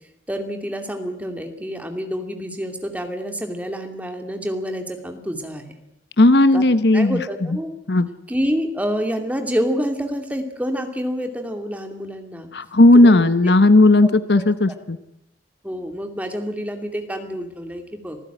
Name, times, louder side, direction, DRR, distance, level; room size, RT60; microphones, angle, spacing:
voice 1, 0.3-5.7 6.5-6.6 6.9-7.7 8.3-12.5 12.9-13.3 14.0-14.4 15.6-18.2, equal, 10° right, 5 dB, 2.5 m, -28 dB
voice 2, 6.2-7.2 7.9-8.1 12.5-15.0, left 2 dB, 60° left, 13 dB, 0.9 m, -14 dB
26.0 x 15.5 x 9.1 m, 0.82 s
head